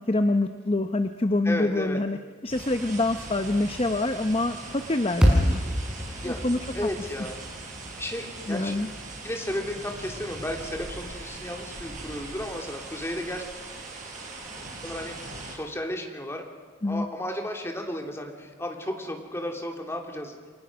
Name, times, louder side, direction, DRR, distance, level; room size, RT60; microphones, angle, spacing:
voice 1, 0.1-2.2 2.4-5.6 6.2-6.6 8.5-8.9 16.8-17.1, left 2 dB, 30° left, 8 dB, 0.8 m, -26 dB
voice 2, 1.4-2.0 6.2-6.4 6.7-7.5 8.0-8.8 9.2-13.5 14.8-16.4 16.8-20.4, left 1 dB, 15° left, 2 dB, 3.0 m, -33 dB
sound 1, 2.5-15.6, right 2 dB, 40° right, 6.1 m, -40 dB
sound 2, 5.2-9.5, equal, 5° right, 5.4 m, -27 dB
30.0 x 23.0 x 6.2 m, 1.4 s
head